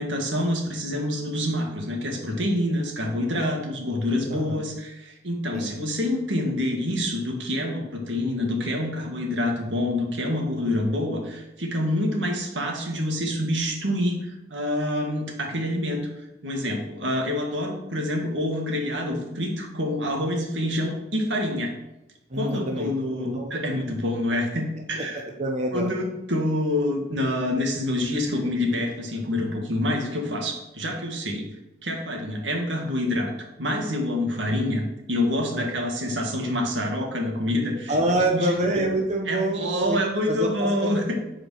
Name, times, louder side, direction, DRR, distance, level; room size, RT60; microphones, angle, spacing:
voice 1, 0.0-16.1 16.4-21.7 22.3-25.2 25.7-31.5 31.8-33.3 33.6-38.8 39.3-41.2, left 1 dB, 80° right, 1 dB, 2.1 m, -27 dB
voice 2, 4.3-4.6 5.5-5.7 22.3-22.9 23.2-23.5 25.1-25.9 35.5-35.7 37.9-40.0 40.3-40.9, right 1 dB, 40° right, 1 dB, 1.0 m, -26 dB
9.7 x 5.1 x 6.5 m, 0.95 s
head